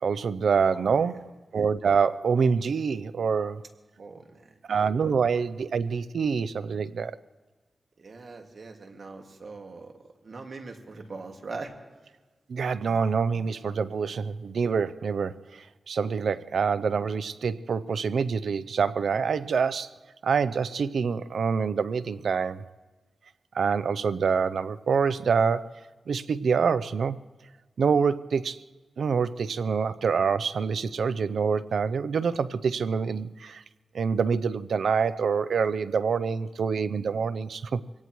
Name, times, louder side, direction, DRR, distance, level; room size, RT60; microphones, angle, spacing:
voice 1, 0.0-3.6 4.7-7.2 12.5-19.9 20.2-22.7 23.5-25.8 26.1-27.2 27.8-28.6 29.0-33.6 33.9-37.8, right 6 dB, 85° right, 0.5 m, -26 dB
voice 2, 0.6-1.1 4.0-4.6 8.0-9.9 10.2-11.7, right 3 dB, 65° right, 2.0 m, -41 dB
24.5 x 17.5 x 3.1 m
wide cardioid pair, 75°, 0 cm